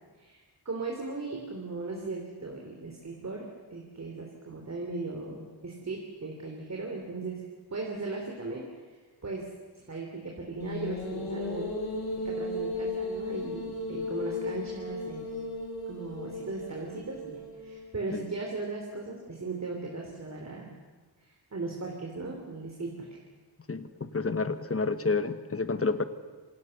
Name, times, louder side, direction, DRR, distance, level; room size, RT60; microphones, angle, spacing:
voice 1, 0.2-7.4 7.7-8.7 9.2-9.5 9.7-11.7 12.2-15.3 15.9-20.7 21.2-23.2, right 3 dB, 40° right, 0 dB, 3.7 m, -37 dB
sound 1, 10.6-18.0, left 2 dB, 60° left, 4.7 m, -35 dB
voice 2, 23.7-26.0, left 4 dB, 30° left, 10 dB, 1.4 m, -29 dB
27.5 x 27.0 x 6.8 m, 1.4 s
wide cardioid pair, 170°, 43 cm